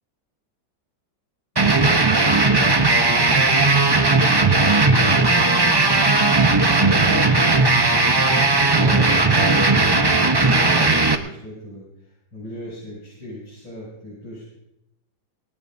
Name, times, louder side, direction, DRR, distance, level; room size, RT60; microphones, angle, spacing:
voice 1, 1.5-4.8 5.7-7.9 8.2-14.5, equal, 75° left, -9 dB, 8.5 m, -39 dB
sound 1, 1.6-11.2, right 3 dB, 30° right, 0.5 m, -17 dB
20.5 x 18.5 x 2.7 m, 0.81 s
omnidirectional pair, 2.1 m